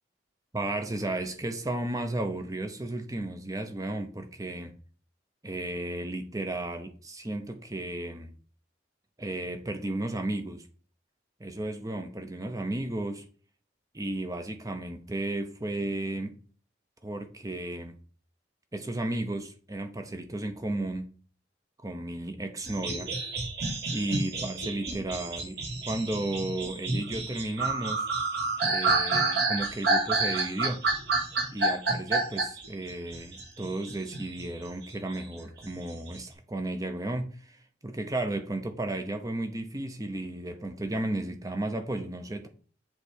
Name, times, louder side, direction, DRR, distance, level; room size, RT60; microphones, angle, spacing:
voice 1, 0.5-4.7 5.4-8.3 9.2-10.7 11.4-13.3 13.9-16.4 17.0-18.0 18.7-21.1 21.8-23.1 23.9-25.6 25.9-28.1 28.7-30.8 31.5-42.5, right 1 dB, 20° right, 0.8 m, -34 dB
sound 1, 22.6-34.5 34.8-36.2, right 3 dB, 55° right, 2.3 m, -29 dB
7.6 x 3.3 x 6.4 m
head